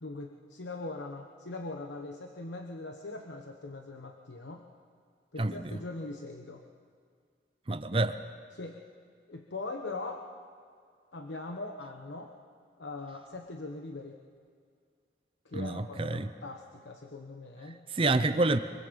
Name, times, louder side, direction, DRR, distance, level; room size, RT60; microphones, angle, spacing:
voice 1, 0.0-4.7 5.3-6.6 7.9-8.0 8.5-8.8 9.3-10.3 11.1-12.3 12.8-14.2 15.4-17.8, left 2 dB, 85° left, 3 dB, 1.2 m, -41 dB
voice 2, 5.4-5.7 7.7-8.2 15.5-16.3 17.9-18.6, right 2 dB, 30° right, 11 dB, 0.6 m, -28 dB
24.0 x 23.5 x 5.3 m, 2.2 s
head